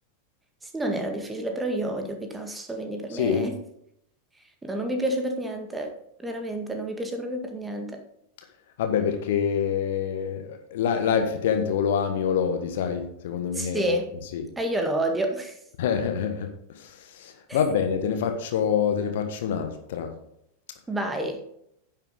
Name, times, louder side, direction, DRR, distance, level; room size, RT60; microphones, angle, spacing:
voice 1, 0.7-3.5 4.6-5.9 6.2-7.9 13.6-14.1 14.6-15.5 17.5-17.6 20.9-21.4, right 1 dB, 10° right, 4 dB, 1.9 m, -29 dB
voice 2, 3.1-3.5 8.8-14.0 14.3-14.4 15.8-20.1, left 7 dB, 55° left, 6 dB, 1.4 m, -26 dB
10.5 x 7.4 x 3.9 m, 0.73 s
figure-of-eight pair, 90°, 0 cm